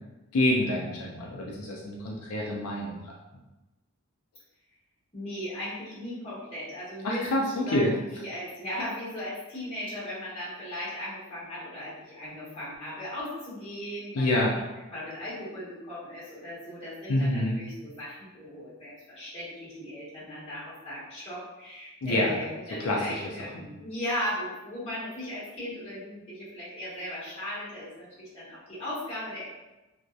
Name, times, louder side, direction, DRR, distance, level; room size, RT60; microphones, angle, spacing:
voice 1, 0.3-3.1 7.0-7.9 14.1-14.6 17.1-17.6 22.0-22.3 22.8-23.2 23.5-23.6, left 1 dB, 85° left, -3 dB, 0.4 m, -27 dB
voice 2, 5.1-14.6 14.9-29.5, left 1 dB, 30° left, -9 dB, 1.1 m, -37 dB
2.6 x 2.1 x 2.3 m, 1.0 s
head